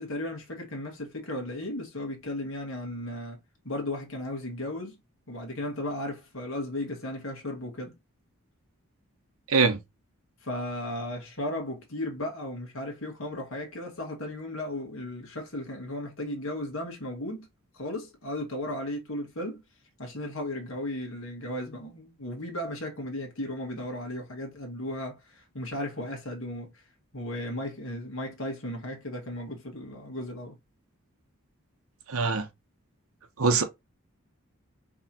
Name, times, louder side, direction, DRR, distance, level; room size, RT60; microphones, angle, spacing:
voice 1, 0.0-3.4 3.7-5.0 5.3-7.9 10.4-17.5 17.7-19.6 20.0-26.8 27.1-30.6, left 1 dB, 65° left, 1.7 m, -35 dB
voice 2, 9.5-9.8 32.1-32.5 33.4-33.6, right 4 dB, 70° right, 1.0 m, -23 dB
4.9 x 3.5 x 2.8 m
head